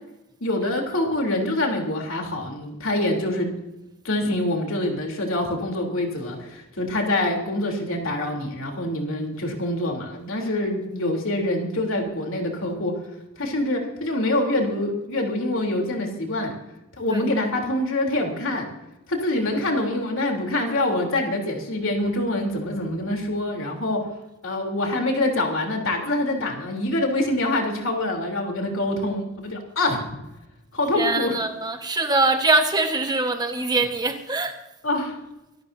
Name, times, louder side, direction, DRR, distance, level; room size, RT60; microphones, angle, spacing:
voice 1, 0.4-3.5 4.0-12.9 13.4-16.5 17.0-18.6 19.1-24.0 24.4-30.0 30.7-31.4 34.8-35.2, left 1 dB, 70° left, 3.5 m, -25 dB
voice 2, 30.9-34.6, right 3 dB, 20° right, 1.4 m, -23 dB
24.5 x 13.5 x 2.8 m
head